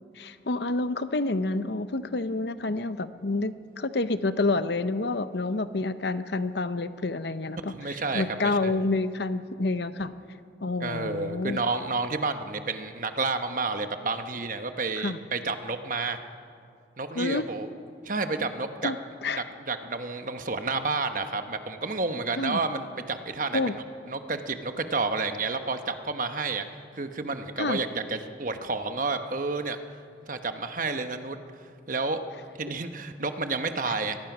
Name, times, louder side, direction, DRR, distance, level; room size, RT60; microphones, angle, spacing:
voice 1, 0.2-10.1 10.6-11.6 15.0-15.2 17.1-17.5 18.8-19.0 19.2-19.4 22.4-22.6 23.5-23.8 27.6-27.8, left 2 dB, 60° left, 12 dB, 0.8 m, -28 dB
voice 2, 7.7-8.8 10.8-16.2 17.0-17.7 18.0-18.9 19.3-23.6 24.1-26.6 27.0-29.8 30.2-31.4 31.9-32.2 32.5-34.2, right 3 dB, 45° right, 8 dB, 1.1 m, -30 dB
22.5 x 20.0 x 6.1 m, 2.4 s
head